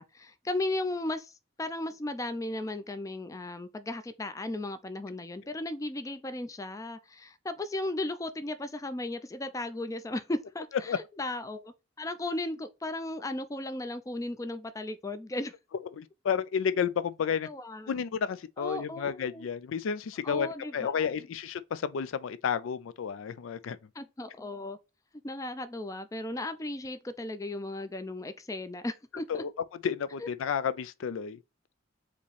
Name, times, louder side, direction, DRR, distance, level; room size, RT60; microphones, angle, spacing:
voice 1, 0.0-1.3 1.6-15.5 17.4-17.9 18.6-19.5 20.2-21.1 24.0-24.8 25.2-29.4 30.2-30.3, left 2 dB, 15° left, 0.4 m, -36 dB
voice 2, 15.9-17.5 17.9-20.5 20.7-23.8 29.3-29.5 29.8-31.4, left 7 dB, 85° left, 0.4 m, -31 dB
4.9 x 2.9 x 3.2 m
head